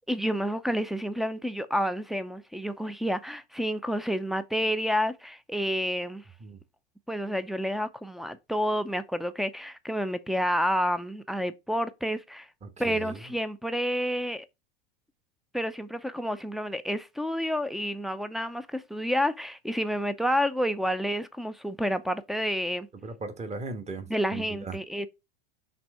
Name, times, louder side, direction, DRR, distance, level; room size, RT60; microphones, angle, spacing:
voice 1, 0.1-6.2 7.1-12.5 12.8-14.5 15.5-22.9 24.1-25.1, equal, ahead, 0.5 m, -29 dB
voice 2, 12.6-13.2 23.0-24.1 24.3-24.8, right 3 dB, 25° right, 1.4 m, -37 dB
6.0 x 3.3 x 4.8 m
hypercardioid pair, 90°, 29 cm